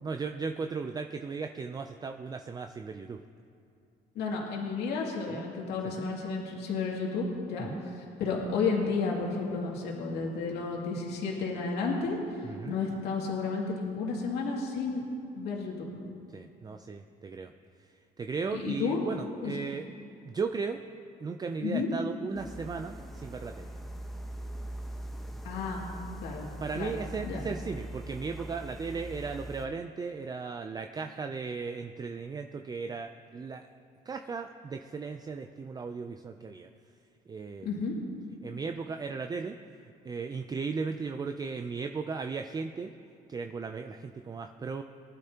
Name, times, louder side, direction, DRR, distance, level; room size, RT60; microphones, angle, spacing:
voice 1, 0.0-3.2 5.3-5.4 5.8-6.1 7.6-7.8 12.4-12.8 16.3-17.5 17.8-17.9 18.2-19.8 20.2-20.8 21.2-23.7 26.6-33.7 34.1-36.7 37.3-37.8 38.4-39.6 39.8-42.9 43.3-44.8, right 4 dB, 25° right, 6 dB, 0.4 m, -36 dB
voice 2, 4.1-7.7 8.2-12.2 12.7-15.0 15.3-15.9 18.5-19.0 19.4-19.6 21.6-21.9 25.4-25.8 26.2-26.4 26.7-27.0 27.2-27.4 37.6-38.0, left 4 dB, 80° left, -2 dB, 2.4 m, -32 dB
sound 1, 22.3-29.7, right 1 dB, ahead, 0.9 m, -41 dB
20.0 x 12.0 x 2.9 m, 2.6 s
cardioid pair, 110°, 17 cm